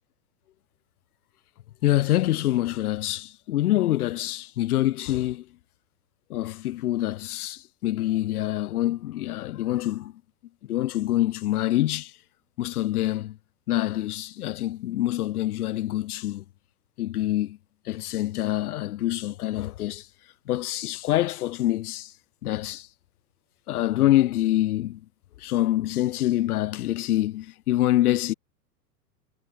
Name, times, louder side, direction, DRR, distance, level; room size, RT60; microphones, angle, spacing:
voice 1, 1.8-5.4 6.3-10.1 10.7-12.1 12.6-13.4 13.7-16.4 17.0-17.6 17.9-20.1 20.5-22.1 22.4-22.9 23.7-25.0 25.4-28.3, left 14 dB, 65° left, 3.8 m, -25 dB
hypercardioid pair, 110°, 47 cm